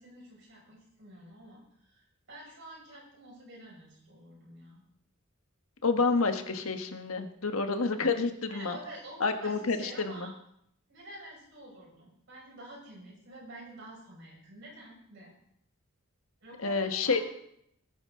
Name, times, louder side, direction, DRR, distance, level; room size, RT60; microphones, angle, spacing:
voice 1, 0.0-4.8 8.5-10.3 10.9-15.3 16.4-17.3, right 1 dB, 60° right, -3 dB, 6.1 m, -48 dB
voice 2, 5.8-8.8 9.2-10.3 16.6-17.2, left 4 dB, 85° left, 7 dB, 1.4 m, -29 dB
19.5 x 9.9 x 3.8 m, 0.72 s
head